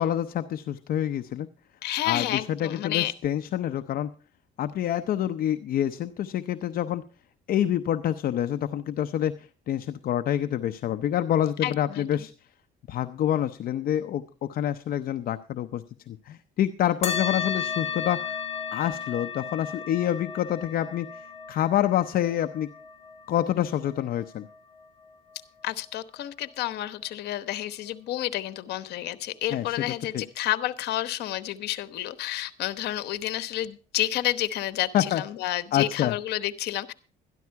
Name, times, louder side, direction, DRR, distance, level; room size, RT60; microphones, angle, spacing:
voice 1, 0.0-1.5 2.0-2.3 2.6-4.1 4.6-7.0 7.5-12.3 12.9-14.2 14.5-18.4 18.7-22.7 23.3-24.5 29.5-29.6 30.1-30.2 34.9-35.2 35.7-36.1, left 11 dB, 60° left, 9 dB, 0.7 m, -27 dB
voice 2, 1.8-3.1 11.6-12.3 25.6-36.9, left 14 dB, 75° left, 13 dB, 1.0 m, -30 dB
sound 1, 17.0-25.9, left 6 dB, 35° left, 2.3 m, -35 dB
13.0 x 11.0 x 4.6 m, 0.36 s
cardioid pair, 110°, 17 cm